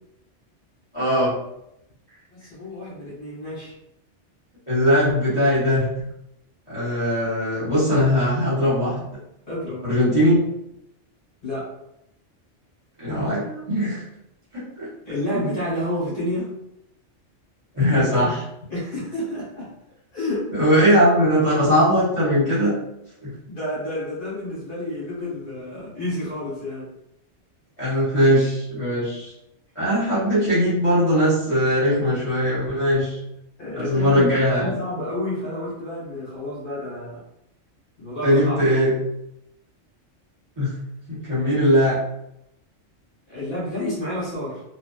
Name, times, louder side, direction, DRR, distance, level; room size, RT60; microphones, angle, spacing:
voice 1, 0.9-1.3 4.7-5.9 6.7-9.0 9.8-10.4 13.0-14.0 14.5-14.9 15.3-15.4 17.7-18.4 20.3-22.7 23.2-23.3 27.8-29.3 29.7-33.2 33.7-34.7 38.2-38.9 40.6-40.7 41.1-42.0, equal, 30° right, -12 dB, 1.1 m, -20 dB
voice 2, 2.3-3.7 9.5-9.9 11.4-11.8 15.0-16.5 18.7-19.7 20.1-20.6 23.5-26.9 33.6-37.2 38.0-38.6 43.3-44.6, left 1 dB, 50° left, -9 dB, 1.4 m, -30 dB
2.5 x 2.2 x 2.3 m, 0.83 s
omnidirectional pair, 1.2 m